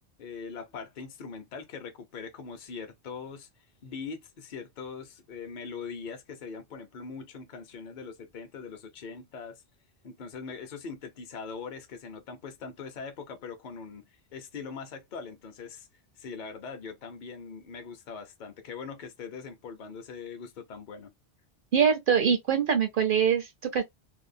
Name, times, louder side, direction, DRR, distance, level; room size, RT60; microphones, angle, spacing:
voice 1, 0.2-3.5 3.8-9.6 10.0-15.9 16.2-21.1, left 5 dB, 50° left, 0.7 m, -41 dB
voice 2, 21.7-23.8, right 7 dB, 60° right, 0.7 m, -24 dB
2.7 x 2.2 x 2.5 m
omnidirectional pair, 1.2 m